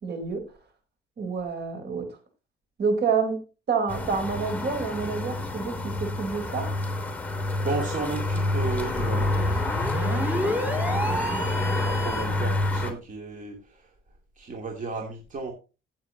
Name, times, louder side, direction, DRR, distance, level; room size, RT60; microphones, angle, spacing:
voice 1, 0.0-0.5 1.2-2.2 2.8-6.7 9.9-10.6, right 5 dB, 60° right, 6 dB, 4.0 m, -29 dB
sound 1, 3.9-12.9, left 2 dB, 10° left, 3.1 m, -28 dB
voice 2, 7.6-9.7 10.0-13.9 14.4-15.5, right 3 dB, 40° right, 1 dB, 2.7 m, -35 dB
sound 2, 8.6-12.4, equal, 10° right, 2.9 m, -31 dB
16.0 x 7.4 x 2.9 m, 0.31 s
cardioid pair, 90°, 20 cm